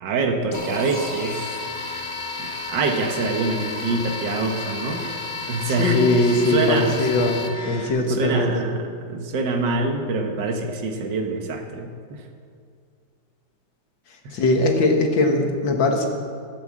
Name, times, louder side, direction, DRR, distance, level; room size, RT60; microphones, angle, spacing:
voice 1, 0.0-1.5 2.4-5.0 5.5-7.1 8.1-12.2 14.2-14.4, right 3 dB, 65° right, 4 dB, 1.8 m, -25 dB
sound 1, 0.5-7.9, left 3 dB, 15° left, 1.5 m, -32 dB
voice 2, 5.8-7.4 7.7-8.6 14.3-16.1, left 2 dB, 70° left, 2 dB, 2.2 m, -20 dB
12.0 x 9.1 x 7.6 m, 2.3 s
omnidirectional pair, 2.2 m